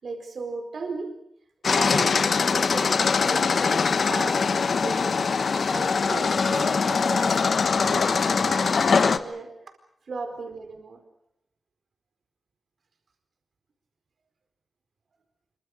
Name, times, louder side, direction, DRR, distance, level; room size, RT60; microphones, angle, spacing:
voice 1, 0.0-1.2 1.6-5.1 5.7-7.4 7.7-9.5 10.1-11.0, right 4 dB, 65° right, 5 dB, 4.4 m, -36 dB
sound 1, 1.6-9.2, left 5 dB, 60° left, 1.3 m, -22 dB
26.5 x 24.0 x 6.4 m, 0.77 s
wide cardioid pair, 105°, 0 cm